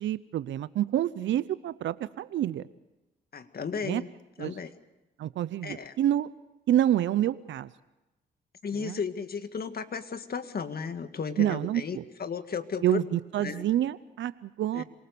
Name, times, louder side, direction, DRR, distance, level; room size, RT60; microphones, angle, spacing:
voice 1, 0.0-2.7 3.8-4.0 4.4-4.6 5.2-6.3 6.7-7.7 8.7-9.0 11.4-12.0 12.8-14.8, right 12 dB, 75° right, 16 dB, 0.7 m, -28 dB
voice 2, 3.3-4.1 4.4-4.7 5.6-5.9 8.6-13.0 13.4-13.6 14.7-14.8, left 6 dB, 50° left, 9 dB, 1.9 m, -34 dB
27.0 x 19.0 x 6.9 m, 1.0 s
supercardioid pair, 55°, 19 cm